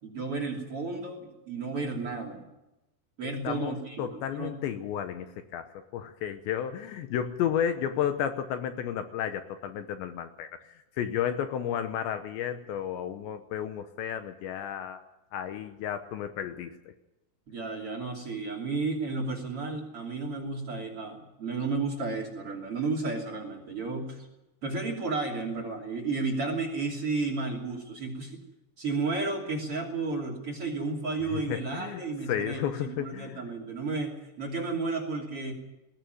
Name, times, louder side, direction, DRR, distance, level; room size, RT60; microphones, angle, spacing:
voice 1, 0.0-2.5 3.2-4.5 17.5-24.3 24.6-28.4 28.8-35.5, right 3 dB, 35° right, 4 dB, 3.1 m, -32 dB
voice 2, 3.2-15.0 15.3-16.8 31.3-32.0 32.3-33.4, left 9 dB, 75° left, 8 dB, 3.0 m, -32 dB
20.5 x 15.5 x 9.3 m, 0.95 s
omnidirectional pair, 5.6 m